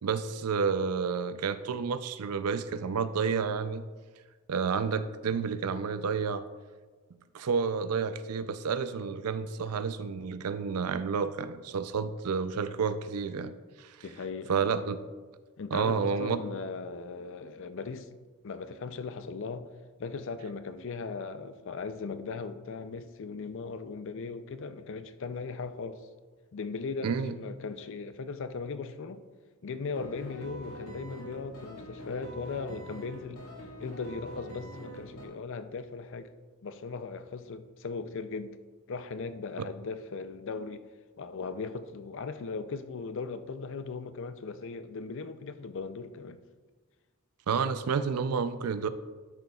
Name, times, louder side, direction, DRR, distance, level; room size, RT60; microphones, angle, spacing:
voice 1, 0.0-3.9 4.5-6.4 7.3-13.5 13.8-13.9 14.5-15.0 15.7-16.4 27.0-27.4 39.6-39.7 47.5-48.9, right 5 dB, 90° right, 0.5 m, -30 dB
voice 2, 14.0-14.5 15.6-18.1 18.4-19.7 20.0-26.0 26.5-29.2 29.6-33.4 33.8-36.3 36.6-38.6 38.9-40.9 41.2-46.4, left 4 dB, 60° left, 0.5 m, -38 dB
sound 1, 30.0-35.3, right 1 dB, 80° left, 2.1 m, -44 dB
12.5 x 6.6 x 2.3 m
head